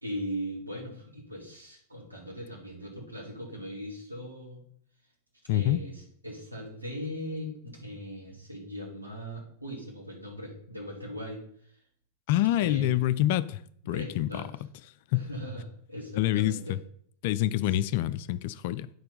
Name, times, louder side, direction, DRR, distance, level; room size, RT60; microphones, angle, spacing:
voice 1, 0.0-4.6 5.5-11.7 12.6-12.9 13.8-14.5 15.1-16.8 17.7-17.8, equal, 85° right, 2.5 m, -39 dB
voice 2, 5.5-5.8 12.3-13.6 13.9-14.3 15.1-15.3 16.2-16.8 17.2-18.9, left 13 dB, 50° left, 0.4 m, -26 dB
9.1 x 4.4 x 5.2 m
figure-of-eight pair, 90°, 0 cm